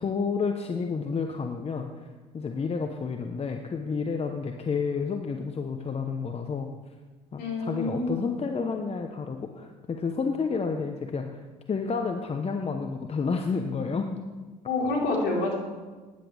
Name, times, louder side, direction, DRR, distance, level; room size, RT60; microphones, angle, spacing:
voice 1, 0.0-2.1 2.3-6.7 7.3-11.4 11.7-14.1, left 5 dB, 30° left, 4 dB, 1.1 m, -30 dB
voice 2, 7.4-8.4 14.7-15.5, left 2 dB, 65° left, -3 dB, 4.1 m, -28 dB
18.0 x 10.5 x 3.5 m, 1.3 s
hypercardioid pair, 60°, 19 cm